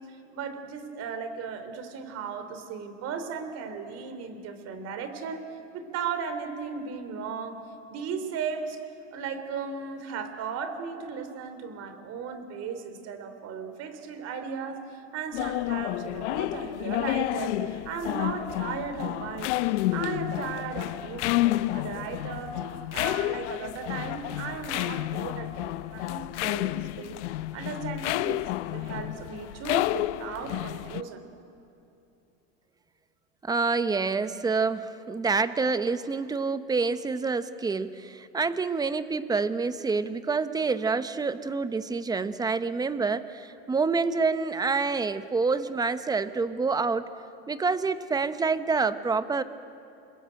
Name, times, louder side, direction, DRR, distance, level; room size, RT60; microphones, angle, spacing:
voice 1, 0.0-5.4 5.7-7.6 7.9-8.8 9.1-21.4 21.7-22.6 22.9-27.2 27.5-28.4 28.7-31.2, right 6 dB, 45° right, 9 dB, 3.4 m, -36 dB
sound 1, 15.3-31.0, left 17 dB, 75° left, 0.8 m, -30 dB
voice 2, 33.4-47.1 47.5-49.4, right 4 dB, 10° right, 12 dB, 0.9 m, -27 dB
29.5 x 21.0 x 9.0 m, 2.8 s
supercardioid pair, 130°, 34 cm